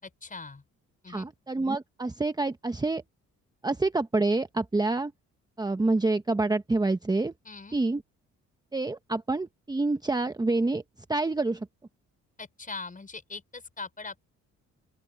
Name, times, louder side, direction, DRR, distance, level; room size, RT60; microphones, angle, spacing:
voice 1, 0.0-0.6 1.0-1.3 7.4-7.8 12.4-14.2, left 4 dB, 25° left, 5.7 m, -41 dB
voice 2, 1.1-3.0 3.6-5.1 5.6-7.3 7.7-8.0 8.7-10.8 11.1-11.7, right 2 dB, 15° right, 1.0 m, -27 dB
open air
cardioid pair, 90°, 30 cm